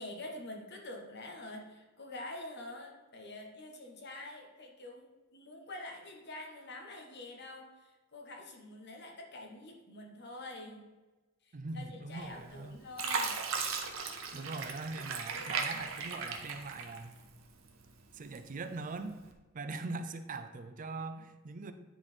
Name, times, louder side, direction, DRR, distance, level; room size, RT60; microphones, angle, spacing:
voice 1, 0.0-5.1 5.3-10.9 11.4-13.4, left 2 dB, 55° left, 2 dB, 1.3 m, -46 dB
voice 2, 11.5-12.8 14.3-17.1 18.1-19.2 19.5-21.7, right 3 dB, 40° right, 9 dB, 0.5 m, -41 dB
Fill (with liquid), 12.2-12.6 13.0-17.4 17.8-18.6 19.2-19.3, right 5 dB, 80° right, 1.0 m, -37 dB
9.8 x 4.2 x 4.4 m, 1.2 s
head